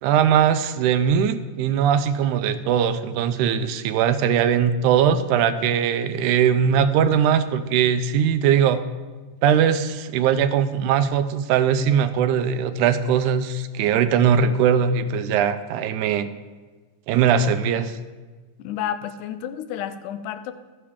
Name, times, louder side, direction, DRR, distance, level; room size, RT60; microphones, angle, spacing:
voice 1, 0.0-8.8 9.4-16.3 17.1-18.0, right 8 dB, 80° right, 11 dB, 2.0 m, -20 dB
voice 2, 18.6-20.5, left 10 dB, 90° left, 11 dB, 2.1 m, -30 dB
13.0 x 9.7 x 3.6 m, 1.4 s
omnidirectional pair, 3.6 m